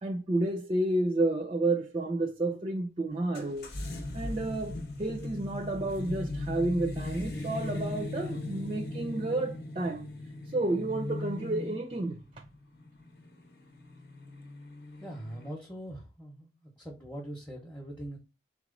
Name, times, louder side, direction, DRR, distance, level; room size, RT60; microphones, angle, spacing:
voice 1, 0.0-3.8 4.1-10.1 10.5-12.4, right 2 dB, 30° right, 0.4 m, -31 dB
sound 1, 3.4-15.5, left 2 dB, 65° left, 0.9 m, -39 dB
voice 2, 15.0-18.2, right 1 dB, 10° left, 0.7 m, -42 dB
3.6 x 3.0 x 3.7 m
head